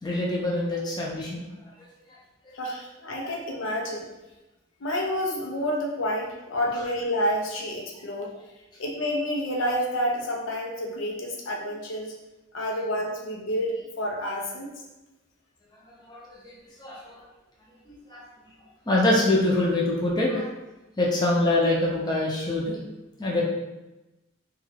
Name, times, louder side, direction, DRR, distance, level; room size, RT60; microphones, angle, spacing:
voice 1, 0.0-1.4 1.8-1.9 2.5-2.6 15.8-16.5 16.8-17.3 17.9-18.2 18.9-20.5 21.0-22.8 23.2-23.4, left 2 dB, 20° left, -4 dB, 0.5 m, -25 dB
voice 2, 2.5-4.1 4.8-8.3 8.8-12.1 12.5-14.7, equal, 85° left, -1 dB, 0.5 m, -29 dB
2.4 x 2.3 x 3.2 m, 1.0 s
head